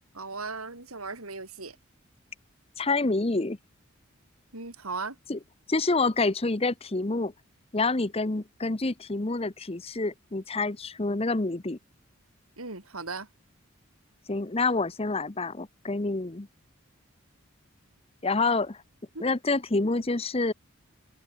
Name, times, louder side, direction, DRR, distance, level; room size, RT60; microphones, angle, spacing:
voice 1, 0.1-1.8 4.5-5.2 12.6-13.3 19.1-19.2, right 4 dB, 90° right, 4.8 m, -37 dB
voice 2, 2.8-3.6 5.3-5.4 5.7-7.3 7.7-11.8 14.3-16.5 18.2-18.8 19.2-20.5, left 3 dB, 25° left, 0.8 m, -27 dB
head